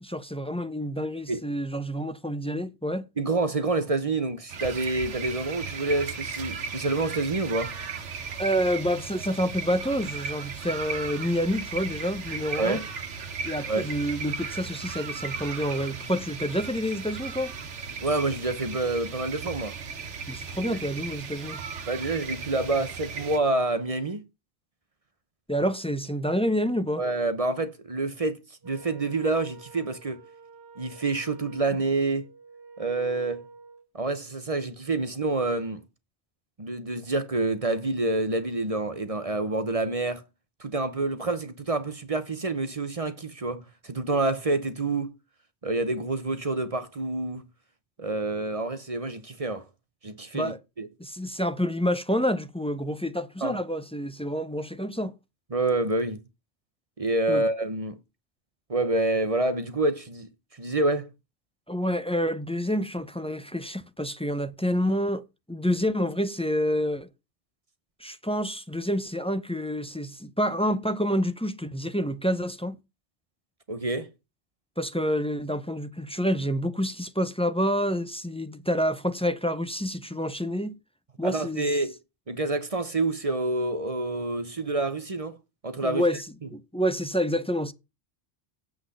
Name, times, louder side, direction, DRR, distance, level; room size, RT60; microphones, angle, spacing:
voice 1, 0.0-3.1 8.4-12.8 13.4-17.5 20.3-21.6 25.5-27.0 50.3-50.6 51.0-55.1 57.3-57.4 61.7-67.1 68.0-72.8 74.8-80.8 81.2-81.7 85.8-86.3 86.5-87.7, equal, 5° left, 0.5 m, -28 dB
voice 2, 3.2-7.7 12.6-12.8 13.7-13.9 18.0-19.8 20.6-20.8 21.9-24.2 27.0-30.2 30.8-32.3 32.8-33.5 33.9-35.8 36.6-40.2 40.6-45.1 45.6-47.5 48.0-49.6 50.0-50.9 53.4-53.6 55.5-56.2 57.0-58.0 58.7-61.1 73.7-74.1 81.2-81.9 82.3-85.4 85.6-86.0, right 2 dB, 35° right, 1.0 m, -28 dB
sound 1, 4.5-23.4, right 5 dB, 85° right, 1.5 m, -36 dB
Wind instrument woodwind instrument, 28.6-33.9, right 3 dB, 70° right, 1.2 m, -49 dB
8.0 x 6.1 x 8.0 m
omnidirectional pair, 1.2 m